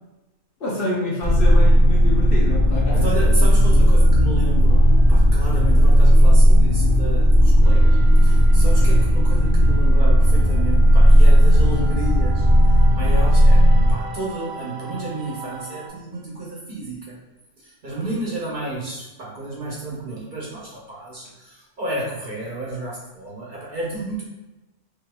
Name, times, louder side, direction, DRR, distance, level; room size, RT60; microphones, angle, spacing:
voice 1, 0.6-4.0, left 1 dB, 55° left, -5 dB, 0.8 m, -28 dB
sound 1, 1.2-13.9, equal, 20° left, 1.0 m, -14 dB
voice 2, 2.9-17.2 17.6-24.2, right 2 dB, 45° right, -5 dB, 0.8 m, -31 dB
sound 2, 7.6-15.9, right 4 dB, 80° right, 1.0 m, -39 dB
4.4 x 2.4 x 2.2 m, 1.0 s
omnidirectional pair, 1.3 m